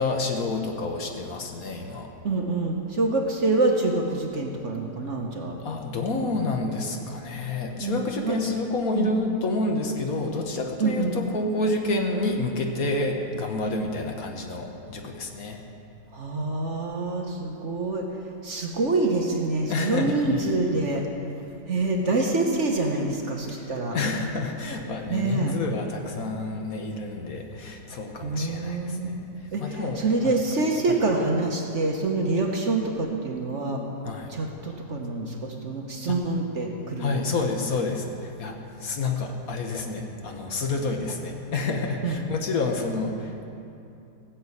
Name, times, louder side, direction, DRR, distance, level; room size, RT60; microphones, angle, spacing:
voice 1, 0.0-2.1 5.6-15.6 19.7-20.5 23.5-30.3 30.9-31.0 34.0-34.3 36.1-36.2 37.0-43.4, left 3 dB, 55° left, 3 dB, 1.5 m, -29 dB
voice 2, 2.2-5.5 7.8-8.5 8.9-9.1 10.8-11.2 16.1-21.1 21.7-24.0 25.1-25.5 28.2-29.1 29.5-33.8 34.3-37.2 42.0-42.2, right 3 dB, 45° right, 1 dB, 1.3 m, -26 dB
16.0 x 7.0 x 8.4 m, 2.7 s
omnidirectional pair, 1.9 m